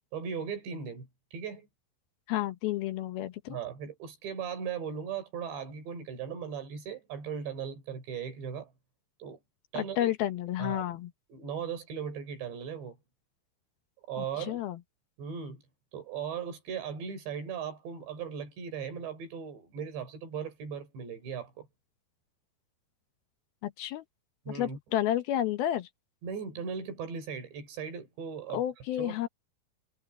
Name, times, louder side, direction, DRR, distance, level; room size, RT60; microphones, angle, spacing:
voice 1, 0.1-1.7 3.5-8.7 9.2-9.4 9.7-10.1 10.6-10.8 11.3-13.0 14.1-14.6 15.2-15.6 15.9-21.7 24.5-24.8 26.2-28.6 29.0-29.2, right 7 dB, 80° right, 7.8 m, -38 dB
voice 2, 2.3-3.6 9.7-11.1 14.2-14.8 23.6-24.1 24.5-25.9 28.5-29.3, left 12 dB, 70° left, 2.7 m, -31 dB
omnidirectional pair, 5.0 m